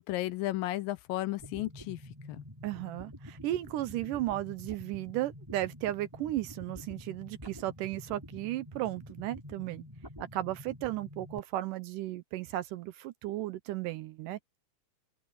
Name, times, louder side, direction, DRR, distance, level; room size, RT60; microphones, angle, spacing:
voice 1, 0.0-2.0 2.3-2.4, left 16 dB, 80° left, 2.5 m, -34 dB
sound 1, 1.4-11.4, equal, 5° right, 7.0 m, -48 dB
voice 2, 2.6-9.9 10.3-14.4, right 15 dB, 80° right, 2.1 m, -35 dB
omnidirectional pair, 4.1 m